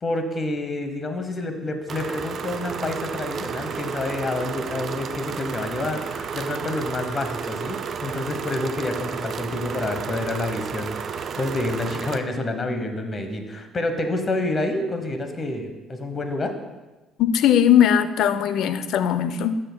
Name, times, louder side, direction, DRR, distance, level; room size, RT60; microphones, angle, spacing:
voice 1, 0.0-16.5, left 2 dB, 35° left, 6 dB, 1.0 m, -28 dB
sound 1, 1.9-12.2, right 6 dB, 55° right, 0.4 m, -32 dB
voice 2, 17.2-19.5, left 9 dB, 75° left, 11 dB, 0.4 m, -19 dB
11.5 x 6.5 x 2.2 m, 1.2 s
cardioid pair, 90°, 0 cm